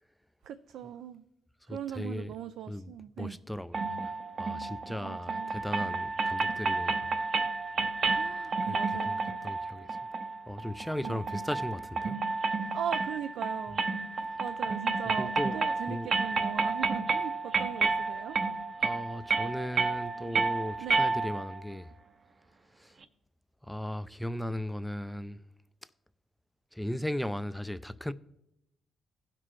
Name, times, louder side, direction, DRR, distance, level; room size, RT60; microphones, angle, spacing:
voice 1, 0.4-1.2 1.7-3.4 5.0-5.6 8.1-9.4 11.0-11.2 12.7-18.4 20.2-20.4 20.8-21.2, right 10 dB, 80° right, 0.3 m, -40 dB
voice 2, 1.7-2.3 2.7-2.9 3.2-4.1 4.4-7.3 8.7-10.0 10.5-12.2 15.2-15.6 15.9-16.1 18.8-21.9 22.8-22.9 23.6-25.4 26.7-28.1, left 1 dB, 5° left, 0.4 m, -37 dB
sound 1, 3.7-21.6, right 4 dB, 50° right, 0.6 m, -31 dB
15.5 x 5.9 x 3.1 m
cardioid pair, 90°, 0 cm